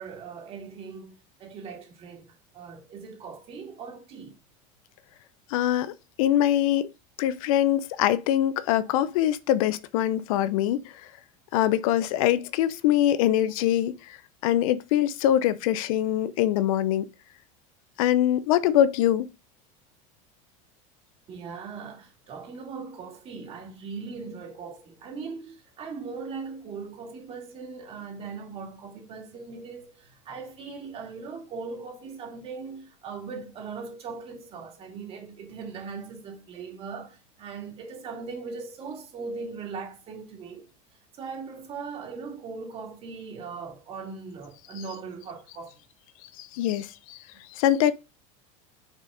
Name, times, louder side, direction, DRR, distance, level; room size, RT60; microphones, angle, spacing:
voice 1, 0.0-4.4 8.9-9.0 21.3-40.6 41.2-45.7, right 5 dB, 35° right, 2.5 m, -39 dB
voice 2, 5.5-5.9 6.2-6.9 7.2-10.8 11.5-14.2 14.4-17.0 18.0-19.3 46.4-47.2 47.6-47.9, left 12 dB, 80° left, 0.7 m, -23 dB
6.2 x 4.2 x 4.9 m
cardioid pair, 155°, 17 cm